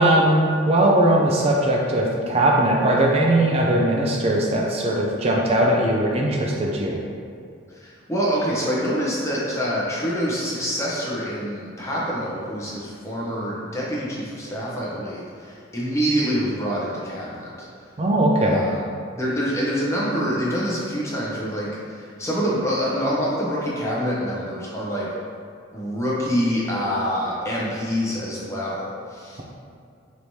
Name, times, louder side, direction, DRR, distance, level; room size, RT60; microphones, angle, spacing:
voice 1, 0.0-7.0 18.0-18.6, right 1 dB, 30° right, -2 dB, 0.4 m, -19 dB
voice 2, 7.7-17.5 18.5-18.8 19.1-25.1 25.7-29.4, equal, 15° left, -6 dB, 0.7 m, -26 dB
4.9 x 3.1 x 2.7 m, 2.3 s
head